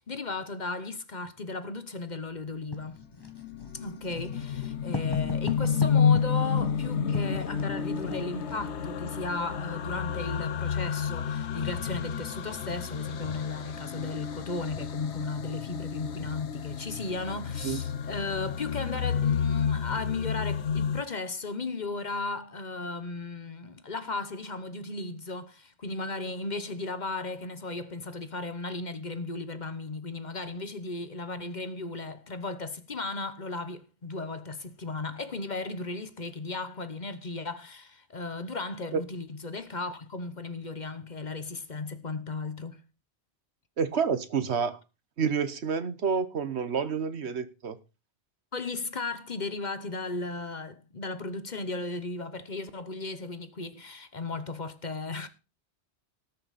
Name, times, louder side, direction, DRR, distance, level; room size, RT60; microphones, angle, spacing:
voice 1, 0.1-3.0 3.7-42.8 48.5-55.3, left 3 dB, 45° left, 1.1 m, -35 dB
Writing, 2.7-8.7, left 1 dB, 20° left, 1.5 m, -40 dB
sound 1, 3.0-21.0, left 7 dB, 75° left, 1.1 m, -30 dB
voice 2, 43.8-44.8 45.2-47.8, right 6 dB, 70° right, 1.3 m, -29 dB
18.5 x 6.7 x 4.1 m
omnidirectional pair, 1.1 m